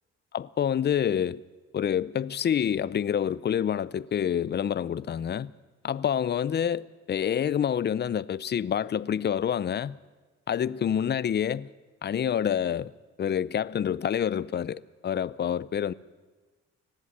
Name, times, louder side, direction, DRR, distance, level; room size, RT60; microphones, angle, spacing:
voice 1, 0.3-1.4 1.7-5.5 5.8-10.0 10.5-11.7 12.0-12.9 13.2-15.9, left 9 dB, 35° left, 0.5 m, -27 dB
19.0 x 14.0 x 9.6 m
cardioid pair, 90°, 30 cm